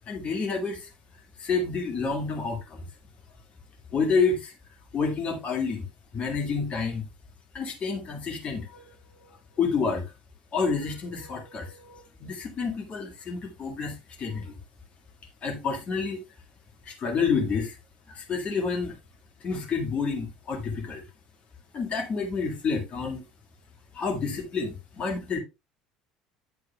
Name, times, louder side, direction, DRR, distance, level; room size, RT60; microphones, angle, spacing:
voice 1, 0.1-0.9 1.4-2.9 3.9-4.5 4.9-5.9 6.1-7.0 7.5-10.0 10.5-14.5 15.4-16.2 16.9-17.8 18.1-18.9 19.4-21.0 21.7-23.2 23.9-25.4, left 5 dB, 35° left, 2.0 m, -29 dB
9.0 x 7.5 x 2.2 m
figure-of-eight pair, 65°, 4 cm